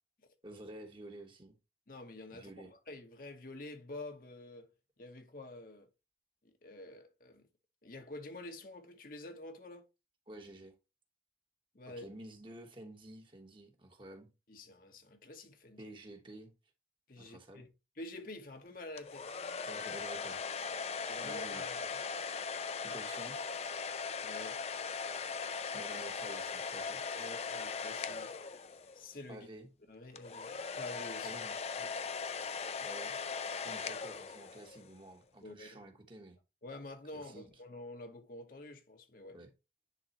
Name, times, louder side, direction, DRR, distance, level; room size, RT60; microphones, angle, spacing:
voice 1, 0.4-1.6 2.3-2.7 10.3-10.7 12.0-14.3 15.8-16.5 17.2-17.7 19.7-20.4 21.2-22.0 22.8-23.4 25.7-27.1 29.3-29.7 31.2-31.5 32.8-33.2 33.6-36.4 37.1-37.5 39.3-39.5, right 1 dB, 30° right, 1.2 m, -50 dB
voice 2, 1.9-4.7 5.0-5.9 6.6-7.5 7.8-9.8 11.7-12.1 14.5-15.9 17.1-17.7 18.0-19.2 19.6-19.7 21.1-21.9 24.2-24.6 27.1-28.3 28.9-29.5 29.9-31.4 31.8-31.9 35.4-35.8 36.6-39.4, left 2 dB, 50° left, 1.1 m, -48 dB
sound 1, 19.0-29.1 30.2-34.9, left 5 dB, 35° left, 0.4 m, -39 dB
10.0 x 3.8 x 3.0 m
head